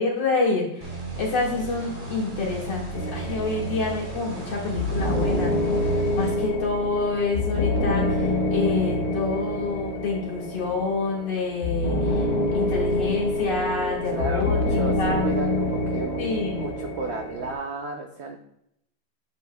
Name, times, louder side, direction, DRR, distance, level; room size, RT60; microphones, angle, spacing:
voice 1, 0.0-12.3 12.5-15.3 16.2-16.7, left 3 dB, 80° left, -4 dB, 2.6 m, -28 dB
sound 1, 0.8-6.3, right 3 dB, 30° right, 1.3 m, -34 dB
sound 2, 2.9-17.5, left 1 dB, 60° left, 1.4 m, -26 dB
voice 2, 14.0-16.3 16.6-18.4, right 3 dB, 75° right, 3 dB, 0.6 m, -33 dB
7.7 x 7.1 x 2.3 m, 0.75 s
omnidirectional pair, 1.9 m